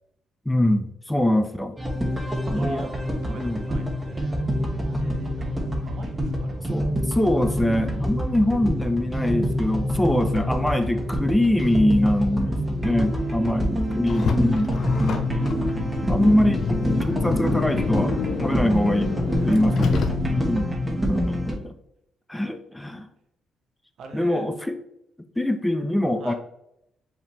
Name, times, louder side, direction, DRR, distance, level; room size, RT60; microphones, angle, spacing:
voice 1, 0.5-1.8 2.5-2.9 3.3-3.6 6.7-14.7 16.1-18.1 18.4-19.2 19.5-19.9 20.3-20.7 21.0-21.8 22.3-23.1 24.1-24.8 25.4-26.3, left 1 dB, 10° left, 8 dB, 0.4 m, -23 dB
sound 1, 1.8-21.5, equal, 15° right, 1.0 m, -26 dB
voice 2, 2.2-6.7 13.1-13.7 19.3-19.8 24.0-24.5 26.2-26.3, right 4 dB, 65° right, 4 dB, 0.9 m, -42 dB
Car, 14.1-20.6, left 5 dB, 60° left, 0.6 m, -29 dB
4.5 x 3.5 x 3.0 m, 0.78 s
cardioid pair, 90°, 0 cm